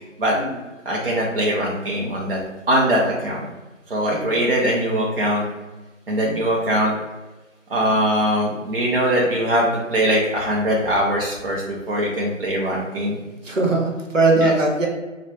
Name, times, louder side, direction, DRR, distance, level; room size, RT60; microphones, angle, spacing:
voice 1, 0.9-2.4 2.7-3.5 3.9-5.5 6.1-6.9 7.7-13.2 14.3-14.5, equal, 45° right, -4 dB, 0.7 m, -21 dB
voice 2, 4.1-4.6 13.4-14.9, right 2 dB, 70° right, 0 dB, 1.1 m, -20 dB
4.6 x 2.4 x 3.4 m, 1.2 s
figure-of-eight pair, 155°, 39 cm